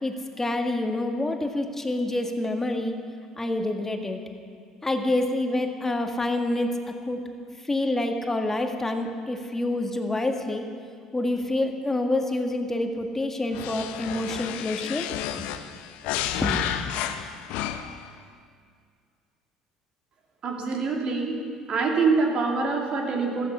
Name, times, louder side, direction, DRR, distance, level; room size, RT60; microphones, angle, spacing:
voice 1, 0.0-3.0 3.4-4.2 4.8-6.8 7.1-7.2 7.7-10.7 11.1-15.1 15.4-15.5 16.4-16.7, left 2 dB, 15° left, 4 dB, 1.8 m, -27 dB
sound 1, 13.5-18.1, left 11 dB, 65° left, 0.7 m, -31 dB
voice 2, 20.4-21.3 21.7-23.5, right 4 dB, 50° right, 0 dB, 2.8 m, -25 dB
15.0 x 13.5 x 5.6 m, 2.2 s
hypercardioid pair, 60°, 2 cm